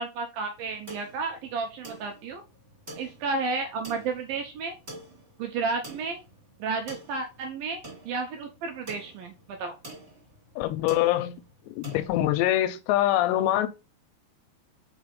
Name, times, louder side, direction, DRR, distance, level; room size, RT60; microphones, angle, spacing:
voice 1, 0.0-2.4 3.0-4.8 5.4-6.2 6.6-9.8, right 4 dB, 75° right, 2.3 m, -32 dB
sound 1, 0.6-12.1, right 1 dB, 15° right, 2.6 m, -47 dB
voice 2, 10.6-11.4 11.7-13.7, left 14 dB, 80° left, 2.8 m, -24 dB
5.4 x 5.0 x 5.3 m
omnidirectional pair, 5.1 m